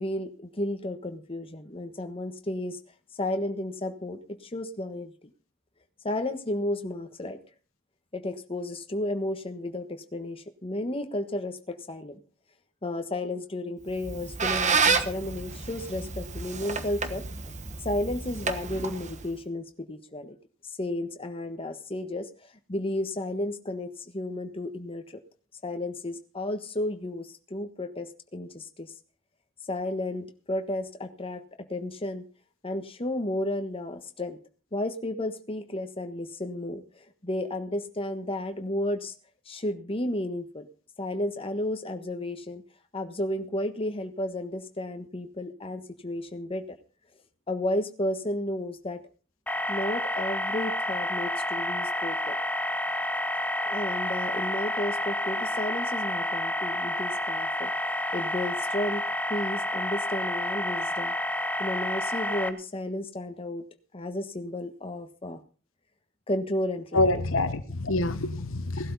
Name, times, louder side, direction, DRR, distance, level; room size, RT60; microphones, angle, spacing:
voice 1, 0.0-2.8 3.2-5.3 6.0-7.4 8.1-12.2 12.8-17.2 17.8-20.3 20.8-22.3 22.7-25.2 25.6-28.9 29.7-32.3 32.6-34.4 34.7-39.1 39.5-40.7 41.0-42.6 42.9-46.6 47.5-49.0 49.7-52.3 53.6-59.0 59.3-61.1 61.6-63.6 63.9-65.4 66.3-67.1, left 1 dB, 30° left, 7 dB, 1.4 m, -33 dB
Squeak, 13.9-19.4, right 5 dB, 35° right, 1.2 m, -30 dB
sound 1, 49.5-62.5, left 1 dB, 10° left, 1.0 m, -30 dB
voice 2, 66.9-68.9, left 2 dB, 75° left, 11 dB, 1.2 m, -26 dB
17.5 x 12.0 x 4.1 m, 0.38 s
head